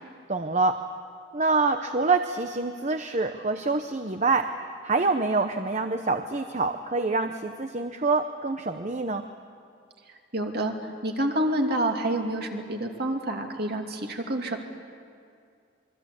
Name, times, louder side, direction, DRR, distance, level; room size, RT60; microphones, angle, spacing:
voice 1, 0.3-0.8 1.3-4.5 4.8-9.2, right 3 dB, 35° right, 7 dB, 0.8 m, -26 dB
voice 2, 10.3-10.7 11.0-14.6, right 1 dB, 55° right, 3 dB, 2.7 m, -28 dB
27.5 x 23.5 x 8.5 m, 2.3 s
head